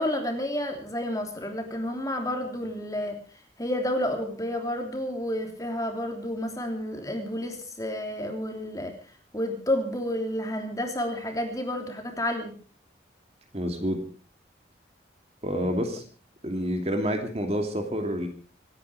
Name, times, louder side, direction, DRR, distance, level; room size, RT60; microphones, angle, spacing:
voice 1, 0.0-3.2 3.6-8.9 9.3-12.5, left 1 dB, 20° left, 4 dB, 3.1 m, -30 dB
voice 2, 13.5-14.0 15.4-16.0 16.4-18.3, equal, 35° right, 4 dB, 2.7 m, -28 dB
26.5 x 10.0 x 4.9 m, 0.39 s
head